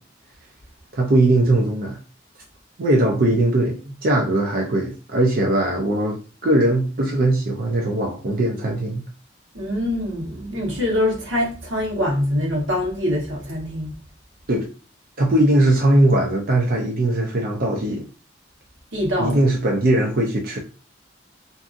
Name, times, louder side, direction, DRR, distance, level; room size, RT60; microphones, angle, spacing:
voice 1, 0.9-2.0 2.8-3.8 4.0-9.1 14.5-14.7 15.2-18.0 19.2-20.6, right 1 dB, 50° right, 0.5 m, -20 dB
voice 2, 9.5-13.9 18.9-19.4, left 1 dB, 85° right, 1.1 m, -24 dB
2.6 x 2.5 x 2.5 m
head